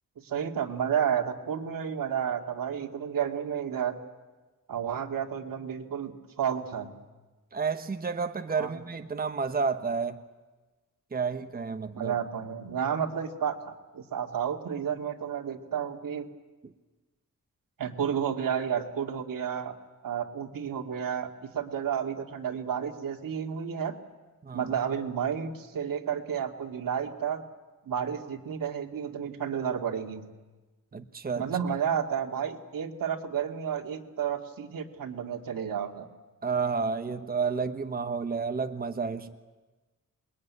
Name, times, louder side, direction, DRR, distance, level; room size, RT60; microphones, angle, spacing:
voice 1, 0.2-3.9 4.7-6.9 8.6-8.8 11.9-16.2 17.8-19.7 20.0-24.0 24.5-27.4 27.9-30.3 31.4-36.1, right 8 dB, 80° right, 4 dB, 2.3 m, -31 dB
voice 2, 7.5-10.2 11.1-12.1 16.6-16.7 24.4-24.7 30.9-31.5 36.4-39.4, right 5 dB, 25° right, 8 dB, 1.1 m, -31 dB
27.0 x 21.5 x 9.7 m, 1.2 s
wide cardioid pair, 140°, 33 cm